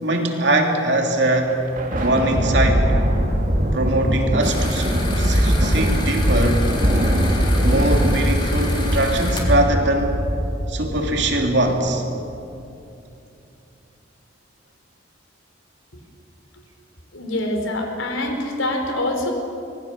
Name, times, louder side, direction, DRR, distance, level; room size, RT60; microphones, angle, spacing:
voice 1, 0.0-1.6 2.0-2.9 3.7-4.9 5.2-6.7 7.6-10.2 10.7-12.0, right 1 dB, 60° right, 2 dB, 3.0 m, -21 dB
Thunder, 1.5-12.1, equal, 45° right, 3.1 m, -21 dB
sound 1, 4.4-9.4, left 2 dB, 25° left, 3.3 m, -32 dB
voice 2, 17.1-19.3, left 1 dB, 85° left, 4 dB, 4.2 m, -25 dB
25.0 x 20.5 x 7.5 m, 2.7 s
head